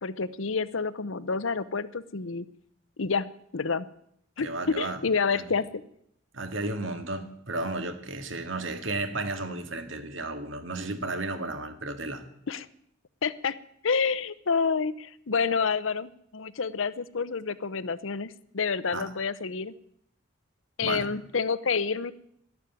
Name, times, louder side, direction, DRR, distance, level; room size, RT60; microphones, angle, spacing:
voice 1, 0.0-2.5 3.0-3.9 4.4-5.8 12.5-12.7 13.2-13.6 13.8-19.7 20.8-22.1, left 5 dB, 75° left, 16 dB, 0.8 m, -28 dB
voice 2, 4.4-5.0 5.3-5.4 6.3-12.2 18.9-19.1 20.8-21.1, right 2 dB, 70° right, 7 dB, 2.0 m, -33 dB
12.0 x 11.5 x 9.3 m, 0.72 s
head